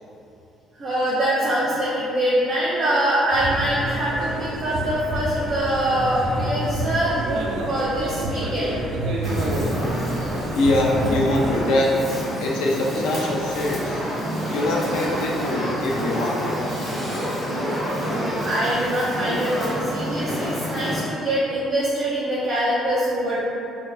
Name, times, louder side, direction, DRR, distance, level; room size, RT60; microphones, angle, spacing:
voice 1, 0.8-8.8 18.1-23.4, right 1 dB, 25° right, -11 dB, 0.6 m, -24 dB
sound 1, 3.3-11.6, right 1 dB, 80° right, 0.4 m, -28 dB
Fire, 9.2-21.0, equal, 20° left, 1.5 m, -28 dB
voice 2, 10.5-12.1 12.4-14.0 14.5-16.8, left 1 dB, 90° left, -2 dB, 0.4 m, -23 dB
4.1 x 2.1 x 2.5 m, 2.8 s
cardioid pair, 160°, 0 cm